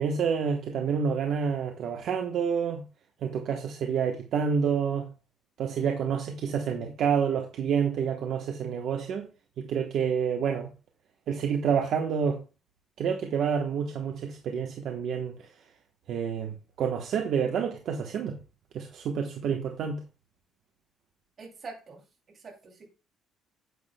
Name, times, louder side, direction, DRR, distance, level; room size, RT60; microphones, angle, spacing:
voice 1, 0.0-2.8 3.2-5.1 5.6-9.3 9.6-10.7 11.3-12.4 13.0-15.5 16.1-18.4 18.7-20.0, right 7 dB, 55° right, 1.0 m, -28 dB
voice 2, 21.4-22.0 22.3-22.8, right 4 dB, 35° right, 2.7 m, -44 dB
9.4 x 8.2 x 2.2 m
cardioid pair, 165°, 0 cm